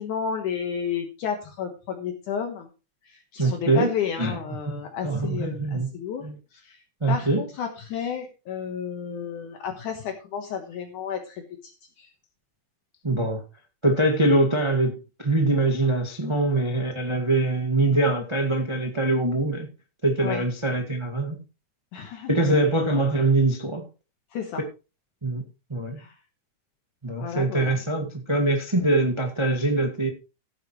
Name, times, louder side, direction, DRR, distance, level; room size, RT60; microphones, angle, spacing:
voice 1, 0.0-2.7 3.1-6.8 7.1-11.7 12.0-12.1 20.2-20.4 21.9-22.3 24.3-24.6 26.0-26.1 27.2-27.8, left 7 dB, 65° left, 4 dB, 2.6 m, -32 dB
voice 2, 3.4-3.9 4.2-4.4 4.7-5.9 6.2-6.4 7.0-7.4 13.0-13.4 13.8-19.7 20.0-21.4 22.3-23.8 25.2-25.4 25.7-26.0 27.0-30.1, right 2 dB, 20° right, 3 dB, 0.8 m, -23 dB
15.5 x 9.0 x 3.1 m, 0.30 s
omnidirectional pair, 4.0 m